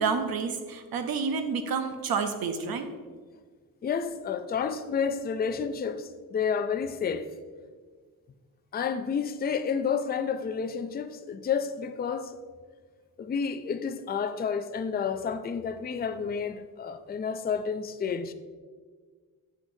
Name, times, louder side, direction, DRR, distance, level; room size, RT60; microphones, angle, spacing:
voice 1, 0.0-2.9, right 5 dB, 80° right, 0.8 m, -29 dB
voice 2, 3.8-7.3 8.7-12.4 13.2-18.3, left 6 dB, 30° left, 0.4 m, -30 dB
7.8 x 6.3 x 2.7 m
wide cardioid pair, 105°, 36 cm